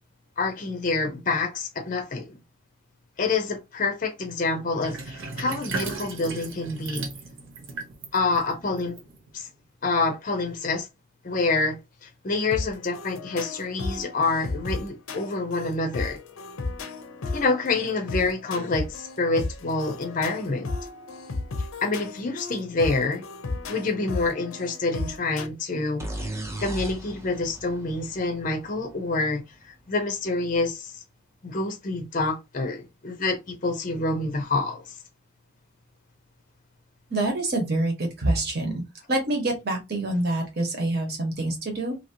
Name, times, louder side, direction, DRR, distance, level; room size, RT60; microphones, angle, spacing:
voice 1, 0.4-2.4 3.2-7.0 8.1-9.0 9.3-9.5 9.8-10.9 11.2-16.2 17.3-20.7 21.6-23.2 23.7-26.3 26.6-31.0 31.4-35.0, left 3 dB, 40° left, 0.5 m, -27 dB
Sink (filling or washing), 4.8-9.5, right 4 dB, 70° right, 0.8 m, -36 dB
sound 1, 12.5-25.5, left 3 dB, 80° left, 0.6 m, -34 dB
sound 2, 26.0-29.7, right 1 dB, 15° right, 0.5 m, -37 dB
voice 2, 37.1-38.8 39.1-42.0, right 2 dB, 50° right, 1.2 m, -26 dB
2.8 x 2.8 x 2.7 m
head